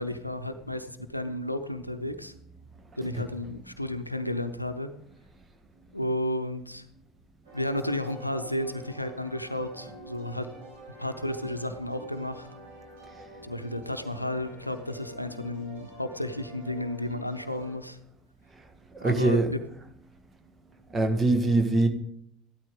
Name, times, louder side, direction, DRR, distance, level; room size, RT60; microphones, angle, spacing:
voice 1, 0.0-2.3 3.0-4.9 5.9-6.8 7.5-10.5 11.0-12.5 13.4-18.0 19.0-19.4, left 1 dB, 90° left, 10 dB, 0.7 m, -32 dB
sound 1, 7.4-17.7, right 1 dB, 65° right, 6.0 m, -46 dB
voice 2, 18.9-19.5 20.9-21.9, right 2 dB, 25° right, 7 dB, 1.6 m, -23 dB
14.0 x 12.5 x 3.8 m, 0.74 s
figure-of-eight pair, 65°, 0 cm